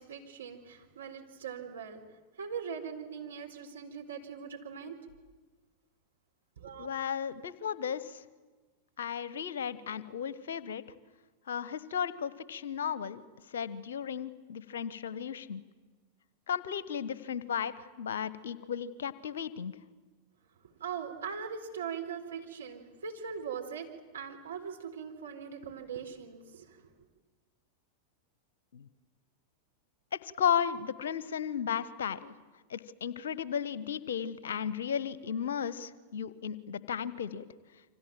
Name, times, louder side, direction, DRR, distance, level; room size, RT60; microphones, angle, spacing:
voice 1, 0.0-2.0 2.4-5.0 6.6-6.9 20.8-23.9 24.1-26.8, right 7 dB, 70° right, 2 dB, 4.3 m, -41 dB
voice 2, 6.8-8.2 9.0-10.8 11.5-13.2 13.5-15.6 16.5-19.7 28.7-28.8 30.1-32.3 32.7-37.5, left 8 dB, 65° left, 17 dB, 1.2 m, -34 dB
28.5 x 25.5 x 7.8 m, 1.3 s
figure-of-eight pair, 90°, 0 cm